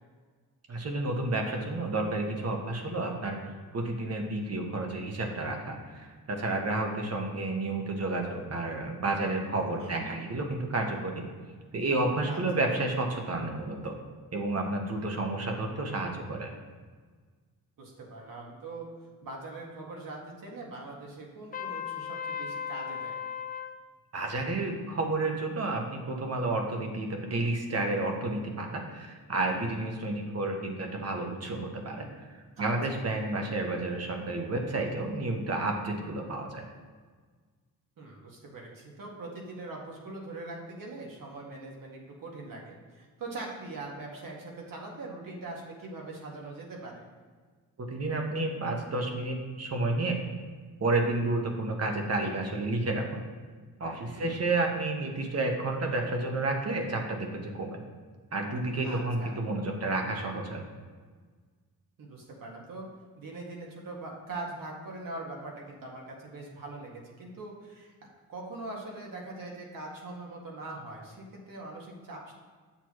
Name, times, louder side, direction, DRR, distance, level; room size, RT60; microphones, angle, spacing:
voice 1, 0.7-3.4 3.7-11.2 11.7-14.0 14.3-16.5 24.1-32.1 32.6-36.7 47.9-50.2 50.8-53.2 53.8-57.8 58.3-60.6, right 2 dB, 40° right, 2 dB, 1.3 m, -31 dB
voice 2, 9.8-10.1 12.3-12.4 17.8-18.9 19.2-23.2 32.6-33.0 38.0-47.0 54.1-54.4 58.8-59.3 62.0-62.9 63.2-67.9 68.3-72.3, right 2 dB, 60° right, -1 dB, 1.8 m, -42 dB
Trumpet, 21.5-23.8, left 7 dB, 25° left, 0.4 m, -36 dB
7.8 x 7.0 x 3.1 m, 1.5 s
cardioid pair, 95°, 37 cm